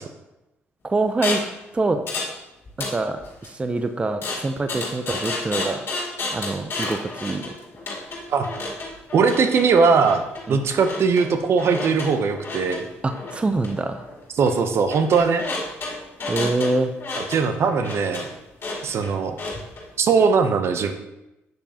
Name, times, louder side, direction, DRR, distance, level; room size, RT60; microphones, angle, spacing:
voice 1, 0.8-1.4 1.7-2.0 2.9-5.8 6.3-7.5 10.5-10.7 13.0-14.1 16.3-16.9, right 2 dB, 25° right, 8 dB, 0.6 m, -25 dB
sound 1, 1.2-1.5 2.1-2.4 2.6-3.5 4.2-19.8, left 2 dB, 50° left, 2.3 m, -31 dB
voice 2, 9.1-10.2 10.5-12.9 14.4-15.4 17.3-18.3 18.8-19.3 20.0-20.9, right 5 dB, 60° right, 8 dB, 0.8 m, -20 dB
7.7 x 6.9 x 2.9 m, 0.93 s
supercardioid pair, 75°, 5 cm